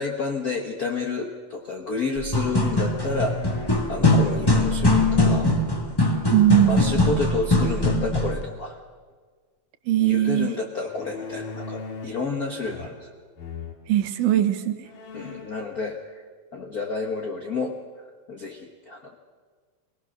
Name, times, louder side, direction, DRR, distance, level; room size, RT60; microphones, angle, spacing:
voice 1, 0.0-5.5 6.7-8.8 10.0-13.1 15.1-16.2 16.5-17.7 18.3-19.2, left 4 dB, 55° left, 1 dB, 1.0 m, -30 dB
sound 1, 2.2-8.4, left 1 dB, 30° left, 0.4 m, -21 dB
sound 2, 2.6-4.0 5.1-5.9 7.3-8.0 10.9-12.3 12.6-13.1 13.4-13.8 14.4-14.5 14.8-15.6, left 3 dB, 90° left, 3.6 m, -37 dB
voice 2, 6.3-6.9 9.9-10.5 13.9-14.8, right 12 dB, 75° right, 8 dB, 2.6 m, -20 dB
24.5 x 18.5 x 6.6 m, 1.6 s
omnidirectional pair, 3.7 m